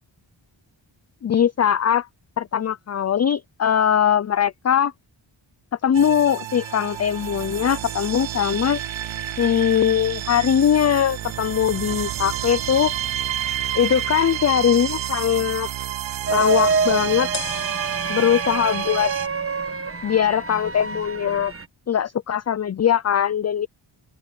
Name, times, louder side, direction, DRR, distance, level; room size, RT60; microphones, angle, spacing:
voice 1, 1.2-2.1 2.4-4.9 5.8-8.8 9.4-12.9 13.7-15.7 16.3-17.3 18.1-19.1 20.0-21.5 21.9-23.7, left 9 dB, 35° left, 0.4 m, -21 dB
sound 1, 5.9-19.3, right 11 dB, 70° right, 0.7 m, -30 dB
sound 2, 6.5-14.5 17.3-20.7, left 5 dB, 75° left, 5.5 m, -44 dB
sound 3, 16.3-21.6, right 4 dB, 30° right, 1.1 m, -27 dB
open air
wide cardioid pair, 150°, 47 cm